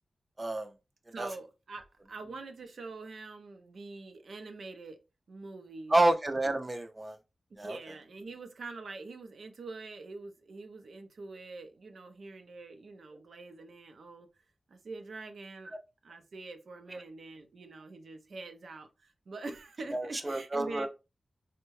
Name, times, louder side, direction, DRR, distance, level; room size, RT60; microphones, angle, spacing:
voice 1, 0.4-0.7 1.2-1.3 5.9-7.2 7.6-7.8 15.7-15.8 16.9-17.0 19.9-20.9, right 2 dB, 25° right, 0.4 m, -29 dB
voice 2, 1.1-5.0 5.3-5.9 7.6-14.3 14.7-15.7 16.0-20.9, right 3 dB, 80° right, 0.5 m, -45 dB
3.5 x 2.1 x 3.1 m
wide cardioid pair, 85°, 0 cm